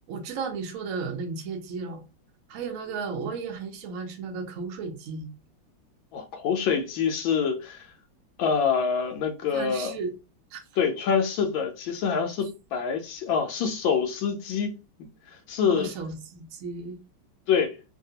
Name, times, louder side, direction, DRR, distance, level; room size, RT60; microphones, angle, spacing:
voice 1, 0.1-2.0 2.5-5.3 9.5-10.1 10.5-10.6 15.7-17.0, right 4 dB, 75° right, 0.7 m, -34 dB
voice 2, 6.1-7.9 8.4-9.9 10.8-14.7 15.3-15.9 17.5-17.8, left 6 dB, 75° left, 1.3 m, -26 dB
3.3 x 2.3 x 2.7 m
omnidirectional pair, 2.3 m